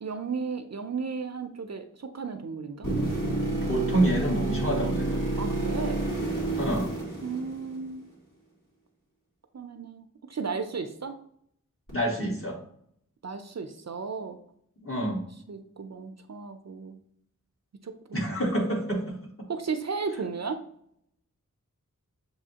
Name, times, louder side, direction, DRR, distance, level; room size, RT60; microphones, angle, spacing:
voice 1, 0.0-2.9 5.4-6.0 7.2-8.0 9.5-11.2 13.2-14.4 15.2-17.0 17.8-18.5 19.5-20.6, right 5 dB, 55° right, 8 dB, 0.5 m, -35 dB
sound 1, 2.8-7.9 11.9-12.0, right 2 dB, 75° left, 2.0 m, -29 dB
voice 2, 3.5-5.4 6.6-6.9 11.9-12.6 14.8-15.2 18.1-19.1, right 1 dB, 40° left, -2 dB, 1.4 m, -27 dB
7.0 x 2.7 x 2.8 m, 0.68 s
wide cardioid pair, 40°, 32 cm